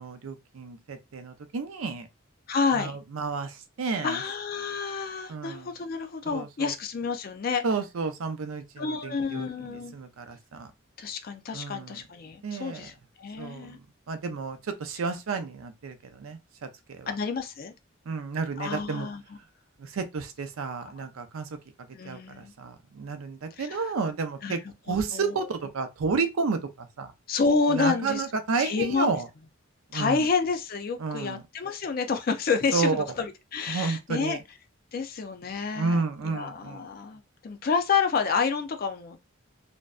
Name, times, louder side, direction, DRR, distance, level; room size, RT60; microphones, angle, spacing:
voice 1, 0.0-2.1 2.8-4.2 5.3-5.7 6.3-6.7 7.6-10.7 11.5-12.0 12.4-12.9 13.4-13.8 14.1-16.7 17.0-17.1 18.1-19.1 19.8-21.5 22.1-24.6 24.9-27.1 27.7-29.3 29.9-30.3 31.0-31.4 32.7-33.0 33.7-34.4 35.7-36.9, right 4 dB, 90° right, 0.5 m, -31 dB
voice 2, 2.5-3.0 4.0-7.6 8.8-10.0 11.0-13.8 17.1-17.7 18.6-19.4 20.9-21.1 21.9-22.5 23.6-23.9 24.4-25.5 27.3-28.3 28.6-29.1 29.9-34.4 34.9-39.2, left 5 dB, 45° left, 0.4 m, -29 dB
2.5 x 2.1 x 2.3 m
head